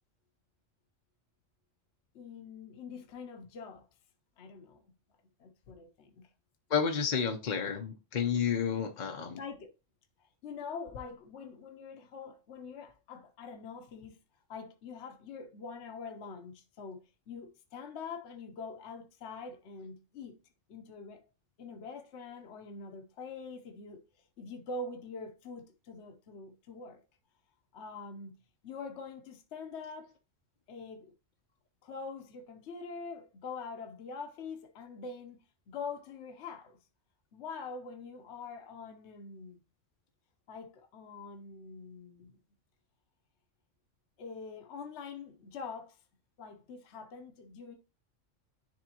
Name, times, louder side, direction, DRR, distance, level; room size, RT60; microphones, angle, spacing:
voice 1, 2.1-3.9 4.4-4.8 5.4-6.3 9.4-9.7 10.2-14.2 14.5-17.0 17.3-20.4 20.7-21.3 21.6-24.1 24.4-27.0 27.7-28.4 28.6-30.1 30.7-31.1 31.8-35.4 35.7-36.8 37.3-39.6 40.5-42.4 44.2-46.0 46.4-47.7, left 4 dB, 60° left, 1.0 m, -44 dB
voice 2, 6.7-9.4, left 7 dB, 45° left, 0.7 m, -31 dB
10.5 x 3.6 x 2.8 m
omnidirectional pair, 1.3 m